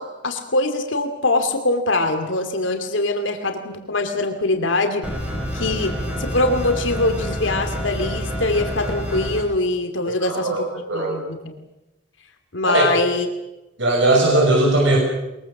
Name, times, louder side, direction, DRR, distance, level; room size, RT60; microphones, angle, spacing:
voice 1, 0.0-5.0 5.5-5.9 6.2-10.7 10.9-11.4 12.5-13.3, left 2 dB, 85° left, 6 dB, 2.5 m, -23 dB
sound 1, 5.0-9.4, equal, 5° right, 6.2 m, -28 dB
voice 2, 10.2-10.6 10.9-11.2 12.6-13.0 13.8-15.0, right 2 dB, 75° right, -1 dB, 6.7 m, -18 dB
22.5 x 22.5 x 7.2 m, 0.97 s
head